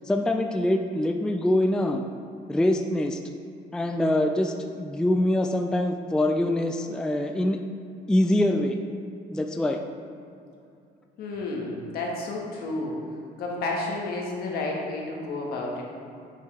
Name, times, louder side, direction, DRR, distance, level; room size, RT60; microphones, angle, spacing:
voice 1, 0.1-2.1 2.5-3.2 3.7-7.6 8.1-8.8 9.3-9.8, left 1 dB, 5° left, 4 dB, 0.3 m, -24 dB
voice 2, 11.2-12.9 13.4-15.8, left 2 dB, 65° left, -2 dB, 1.5 m, -31 dB
7.5 x 5.9 x 3.3 m, 2.5 s
cardioid pair, 110°, 17 cm